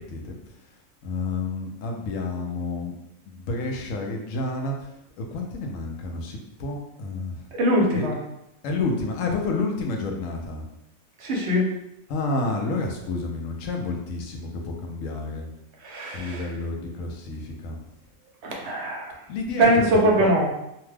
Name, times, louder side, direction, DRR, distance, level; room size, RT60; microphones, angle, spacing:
voice 1, 0.1-2.9 3.3-4.9 5.2-7.5 7.9-8.1 8.6-10.7 12.1-15.5 16.1-17.8 19.3-20.3, left 3 dB, 75° left, 2 dB, 0.9 m, -30 dB
voice 2, 7.5-8.2 11.2-11.7 15.8-16.4 18.4-19.1 19.6-20.5, right 1 dB, 60° right, -1 dB, 0.9 m, -22 dB
2.8 x 2.2 x 3.2 m, 0.85 s
omnidirectional pair, 1.4 m